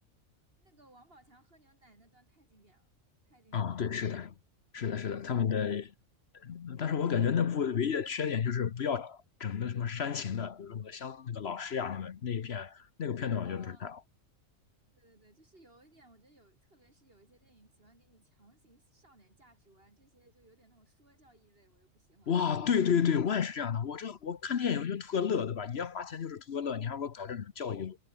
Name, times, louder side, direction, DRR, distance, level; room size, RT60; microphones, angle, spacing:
voice 1, 0.6-2.9 3.3-4.1 5.1-5.4 13.4-13.9 14.9-22.5 24.6-24.7, right 2 dB, 45° right, 3.9 m, -63 dB
voice 2, 3.5-4.3 4.7-5.9 6.3-14.0 22.3-28.0, left 7 dB, 55° left, 1.1 m, -32 dB
omnidirectional pair, 1.4 m